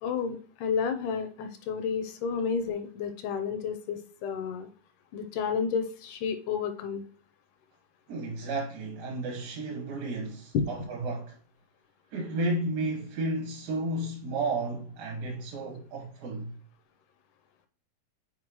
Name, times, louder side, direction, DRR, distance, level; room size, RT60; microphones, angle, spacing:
voice 1, 0.0-4.7 5.1-7.1 10.5-10.6, left 6 dB, 80° left, 1.9 m, -31 dB
voice 2, 8.1-11.4 12.1-16.5, right 2 dB, 80° right, 2.9 m, -32 dB
7.4 x 4.6 x 3.0 m
omnidirectional pair, 4.0 m